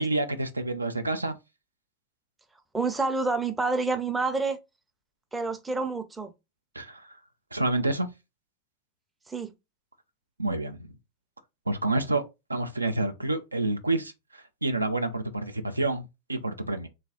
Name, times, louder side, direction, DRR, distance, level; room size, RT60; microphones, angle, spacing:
voice 1, 0.0-1.4 6.7-7.2 7.5-8.1 10.4-10.9 11.7-12.2 12.5-16.9, right 2 dB, 80° right, 0.4 m, -28 dB
voice 2, 2.7-4.6 5.3-6.3 9.3-9.5, right 3 dB, 10° right, 0.5 m, -28 dB
3.3 x 2.3 x 3.5 m
figure-of-eight pair, 90°, 0 cm